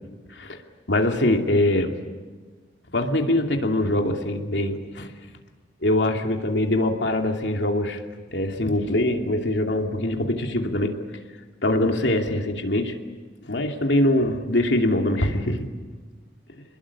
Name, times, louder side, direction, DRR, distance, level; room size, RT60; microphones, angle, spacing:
voice 1, 0.3-0.6 0.9-1.9 2.9-5.1 5.8-8.0 8.3-11.0 11.6-13.0 13.4-15.7 16.5-16.6, left 1 dB, 80° left, 3 dB, 2.7 m, -23 dB
27.5 x 21.0 x 8.6 m, 1.4 s
head